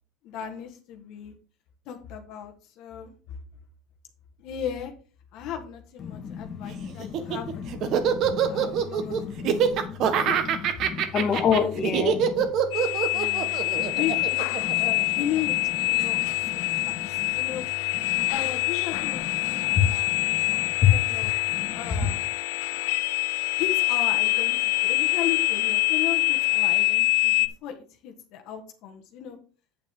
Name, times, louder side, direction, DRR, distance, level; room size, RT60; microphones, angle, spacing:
voice 1, 0.2-1.3 1.8-3.4 4.4-4.9 5.3-10.3 11.1-11.8 13.1-13.6 13.9-17.6 18.3-20.1 20.9-21.3 21.7-22.3 23.6-29.4, left 10 dB, 55° left, 4 dB, 1.5 m, -36 dB
voice 2, 6.0-12.5 13.8-14.0 14.6-14.9 16.0-17.6 18.0-18.3 19.0-20.9 21.5-22.0, left 8 dB, 35° left, 4 dB, 1.8 m, -30 dB
Laughter, 7.0-15.4, right 8 dB, 45° right, 1.3 m, -25 dB
sound 1, 12.7-27.5, left 26 dB, 75° left, 0.6 m, -25 dB
8.8 x 8.4 x 3.7 m, 0.38 s
supercardioid pair, 135°, 0 cm